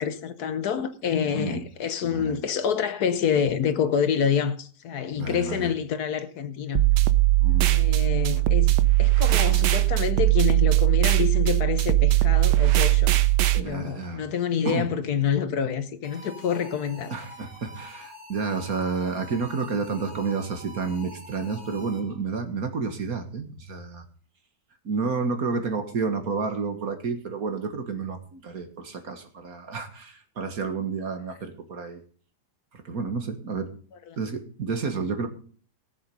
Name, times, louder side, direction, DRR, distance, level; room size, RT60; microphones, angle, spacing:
voice 1, 0.0-6.9 7.7-13.2 13.5-17.1 34.1-34.2, left 7 dB, 65° left, 1.4 m, -27 dB
voice 2, 1.3-1.6 2.0-2.4 5.1-5.7 7.4-7.7 13.6-14.2 14.7-14.9 17.1-24.0 24.8-32.0 32.7-33.7 34.2-35.3, right 4 dB, 55° right, 2.1 m, -30 dB
sound 1, 6.8-13.6, right 17 dB, 80° right, 1.3 m, -20 dB
sound 2, 16.0-22.3, left 1 dB, 25° right, 3.8 m, -46 dB
17.5 x 7.5 x 5.4 m
omnidirectional pair, 1.8 m